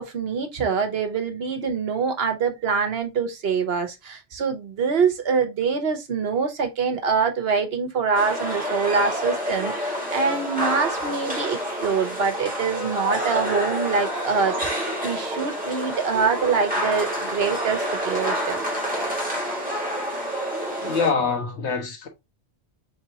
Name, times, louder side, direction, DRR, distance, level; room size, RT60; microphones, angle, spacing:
voice 1, 0.0-18.6, right 5 dB, 65° right, 1.1 m, -25 dB
sound 1, 8.1-21.1, equal, 10° right, 1.9 m, -28 dB
voice 2, 20.8-22.1, left 5 dB, 85° left, 1.3 m, -24 dB
4.3 x 3.4 x 2.8 m
omnidirectional pair, 1.1 m